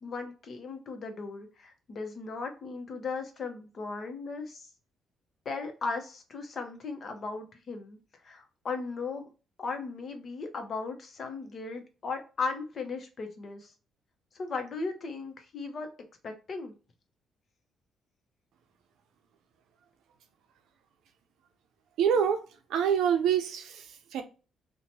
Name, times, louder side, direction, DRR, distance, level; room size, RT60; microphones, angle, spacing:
voice 1, 0.0-4.7 5.4-8.0 8.2-9.2 9.6-13.7 14.3-15.9 16.2-16.7, left 4 dB, 50° left, 0.7 m, -37 dB
voice 2, 22.0-22.4 22.7-24.2, right 8 dB, 80° right, 0.5 m, -26 dB
2.8 x 2.2 x 2.9 m
cardioid pair, 90°, 0 cm